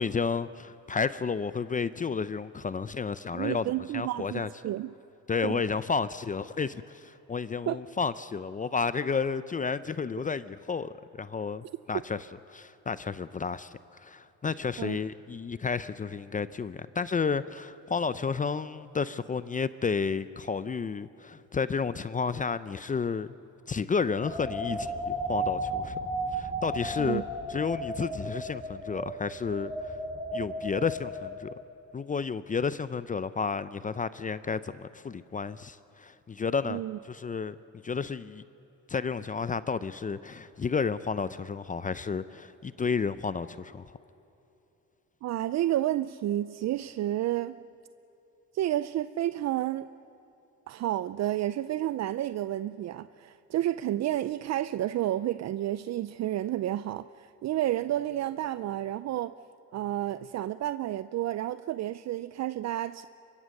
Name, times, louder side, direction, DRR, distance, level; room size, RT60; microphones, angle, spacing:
voice 1, 0.0-3.7 3.9-4.5 5.3-23.4 23.7-25.9 26.3-27.2 27.5-30.0 30.3-31.5 31.9-37.6 37.8-38.4 38.9-43.8, left 5 dB, 25° left, 15 dB, 0.6 m, -31 dB
voice 2, 3.3-4.9 5.4-5.6 7.7-7.8 14.8-15.0 27.0-27.2 36.7-37.0 45.2-47.6 48.5-49.9 50.7-59.3 59.7-63.1, right 13 dB, 60° right, 15 dB, 0.5 m, -30 dB
sound 1, 24.2-31.5, right 1 dB, 10° left, 4.8 m, -34 dB
24.0 x 22.5 x 6.6 m, 2.9 s
cardioid pair, 90°, 30 cm